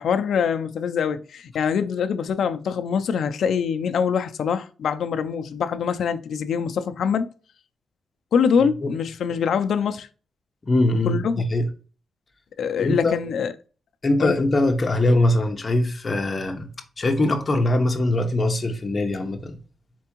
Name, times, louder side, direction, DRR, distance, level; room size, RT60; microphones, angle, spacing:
voice 1, 0.0-7.3 8.3-10.1 11.0-11.4 12.6-13.5 14.2-14.4, left 7 dB, 70° left, 0.4 m, -24 dB
voice 2, 10.6-11.7 12.8-13.2 14.0-16.7 17.0-19.6, left 1 dB, 30° left, 0.8 m, -22 dB
4.5 x 3.4 x 2.9 m
wide cardioid pair, 145°, 0 cm